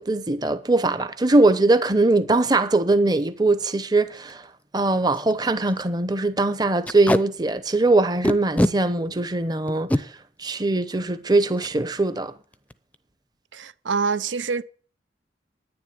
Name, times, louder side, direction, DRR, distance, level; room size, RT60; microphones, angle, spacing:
voice 1, 0.0-4.5 4.7-10.1 10.4-12.3, right 2 dB, 20° right, 0.8 m, -21 dB
Packing tape duct tape, 3.2-3.4 3.8-3.9 4.2-4.3 4.8-4.9 5.1-5.3 5.7-5.8 6.8-7.2 8.2-8.7 9.7-10.0 11.6-11.7 12.1-12.3 12.5-12.9, left 1 dB, 10° left, 0.5 m, -23 dB
voice 2, 13.5-14.6, right 5 dB, 85° right, 0.7 m, -25 dB
10.5 x 9.9 x 9.6 m
head